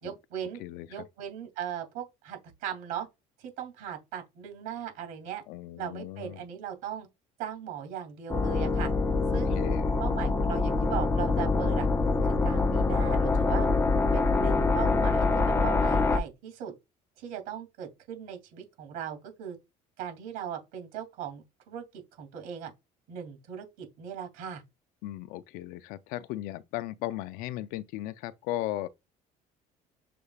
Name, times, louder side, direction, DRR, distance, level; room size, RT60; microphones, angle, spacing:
voice 1, 0.0-0.6 0.9-3.1 3.4-5.4 5.8-7.1 7.4-8.9 9.3-9.6 10.0-11.9 12.4-13.7 14.1-16.7 17.2-19.6 20.0-22.7 23.1-24.6, right 9 dB, 80° right, 2.5 m, -38 dB
voice 2, 5.5-6.4 9.5-10.0 25.0-28.9, left 15 dB, 75° left, 0.4 m, -36 dB
sound 1, 8.3-16.2, left 3 dB, 15° left, 0.5 m, -25 dB
6.7 x 3.3 x 2.3 m
cardioid pair, 155°, 15 cm